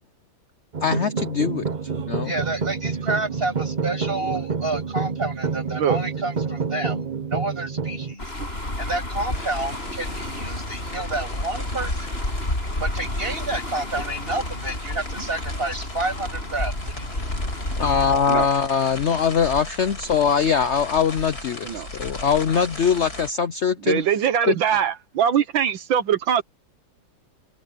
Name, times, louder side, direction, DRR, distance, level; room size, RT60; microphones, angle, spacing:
sound 1, 0.7-8.1, right 5 dB, 45° right, 0.5 m, -28 dB
voice 1, 0.8-1.6 2.1-2.3 17.8-21.7 22.0-24.0 24.5-24.6, left 7 dB, 80° left, 0.6 m, -22 dB
voice 2, 2.2-8.3 8.8-12.1 12.8-17.3, right 2 dB, 30° right, 7.5 m, -30 dB
sound 2, 8.2-18.2, left 1 dB, 30° left, 6.7 m, -30 dB
sound 3, 9.3-23.3, left 2 dB, 50° left, 7.3 m, -38 dB
voice 3, 23.8-26.4, right 8 dB, 80° right, 1.8 m, -22 dB
open air
omnidirectional pair, 2.1 m